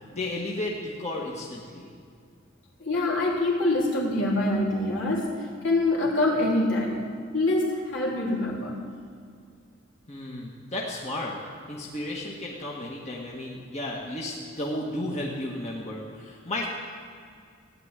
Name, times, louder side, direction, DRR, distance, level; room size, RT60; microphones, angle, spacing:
voice 1, 0.1-1.9 10.1-11.3 11.7-16.7, left 1 dB, 35° left, -4 dB, 1.9 m, -33 dB
voice 2, 2.8-7.0 7.3-8.8, left 2 dB, 70° left, -4 dB, 3.6 m, -25 dB
16.0 x 8.0 x 9.8 m, 2.2 s
head